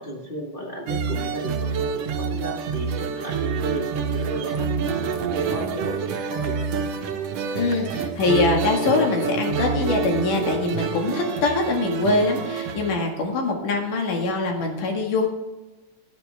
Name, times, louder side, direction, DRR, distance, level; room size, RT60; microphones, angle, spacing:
voice 1, 0.0-6.6, equal, 25° left, -3 dB, 1.2 m, -35 dB
sound 1, 0.9-12.9, right 6 dB, 65° right, 1.7 m, -27 dB
voice 2, 7.6-15.3, left 3 dB, 75° left, 2 dB, 3.4 m, -23 dB
13.5 x 9.9 x 3.4 m, 1.1 s
omnidirectional pair, 3.7 m